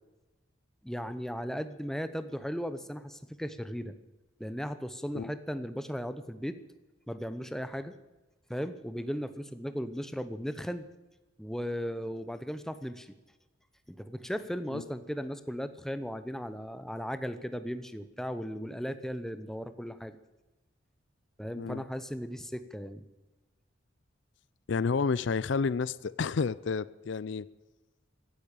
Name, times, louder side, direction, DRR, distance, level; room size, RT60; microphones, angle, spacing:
voice 1, 0.8-3.9 4.4-6.6 7.1-8.0 8.5-10.9 11.4-13.1 13.9-20.2 21.4-23.0, equal, ahead, 0.8 m, -36 dB
voice 2, 24.7-27.5, left 5 dB, 65° left, 0.4 m, -30 dB
16.0 x 10.0 x 8.9 m
head